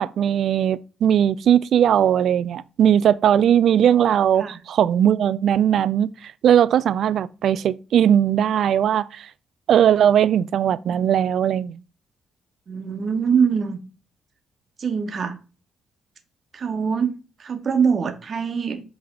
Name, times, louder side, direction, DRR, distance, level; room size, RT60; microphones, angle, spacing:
voice 1, 0.0-9.3 9.7-11.8, right 9 dB, 65° right, 0.3 m, -19 dB
voice 2, 12.7-13.8 14.8-15.4 16.5-18.8, right 6 dB, 45° right, 1.1 m, -23 dB
8.0 x 3.4 x 3.7 m
cardioid pair, 90°, 0 cm